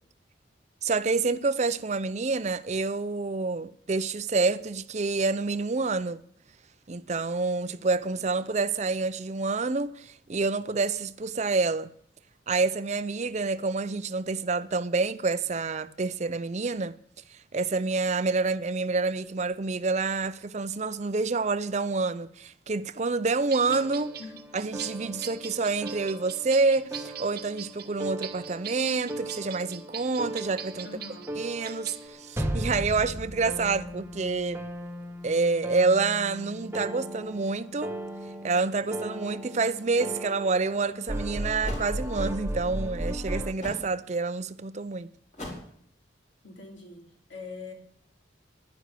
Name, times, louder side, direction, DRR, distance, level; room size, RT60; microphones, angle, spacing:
voice 1, 0.8-6.2 6.9-11.9 12.5-17.0 17.3-24.2 24.5-30.9 31.4-34.6 35.2-37.9 38.4-45.1, right 3 dB, 35° right, 0.5 m, -28 dB
sound 1, 23.5-32.1, right 10 dB, 55° right, 1.0 m, -42 dB
sound 2, 23.7-43.5, right 1 dB, 15° right, 1.0 m, -37 dB
voice 2, 30.8-31.4 46.4-47.7, left 4 dB, 70° left, 3.1 m, -43 dB
sound 3, 41.6-41.9 43.6-43.9 45.3-45.8, left 1 dB, 35° left, 4.0 m, -38 dB
11.0 x 10.5 x 6.7 m
head